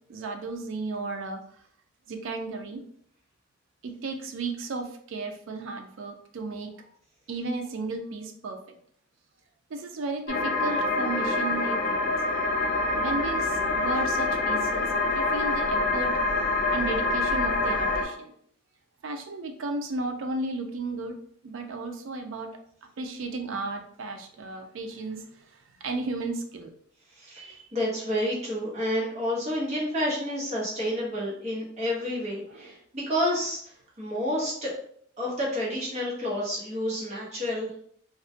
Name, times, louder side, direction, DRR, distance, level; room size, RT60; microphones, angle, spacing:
voice 1, 0.1-1.4 2.1-2.8 3.8-6.7 7.3-8.8 9.7-12.1 12.9-16.3 16.7-18.3 19.0-21.2 21.4-22.5 23.0-25.2 25.8-26.7 27.3-27.7 32.5-32.7, right 3 dB, 75° right, 5 dB, 0.4 m, -34 dB
sound 1, 10.3-18.0, left 2 dB, 40° left, 0.4 m, -26 dB
voice 2, 27.1-33.6 34.0-34.7 35.2-37.7, equal, 35° right, -5 dB, 0.8 m, -29 dB
2.3 x 2.1 x 2.6 m, 0.62 s
head